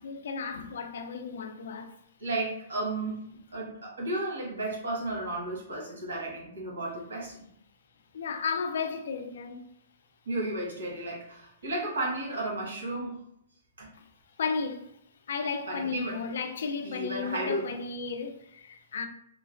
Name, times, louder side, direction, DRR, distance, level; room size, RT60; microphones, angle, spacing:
voice 1, 0.0-1.9 8.1-9.6 14.4-14.9 15.3-19.1, left 5 dB, 70° left, 0.4 m, -34 dB
voice 2, 2.2-3.2 3.5-7.5 10.2-13.2 13.8-13.9 15.7-16.2 16.8-17.6, right 2 dB, 85° right, 1.3 m, -33 dB
3.1 x 2.1 x 2.4 m
hypercardioid pair, 150°, 0 cm